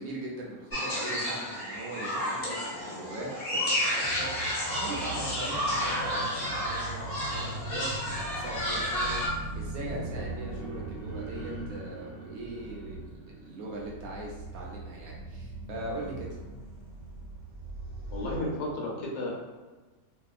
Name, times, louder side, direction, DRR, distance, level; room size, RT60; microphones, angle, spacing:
voice 1, 0.0-16.3, right 2 dB, 70° right, -2 dB, 1.0 m, -40 dB
sound 1, 0.7-9.3, equal, 50° left, 0.9 m, -31 dB
sound 2, 4.0-18.4, right 2 dB, 90° right, 1.3 m, -40 dB
voice 2, 18.1-19.3, left 1 dB, 75° left, -3 dB, 1.1 m, -33 dB
2.8 x 2.4 x 2.3 m, 1.3 s
omnidirectional pair, 1.6 m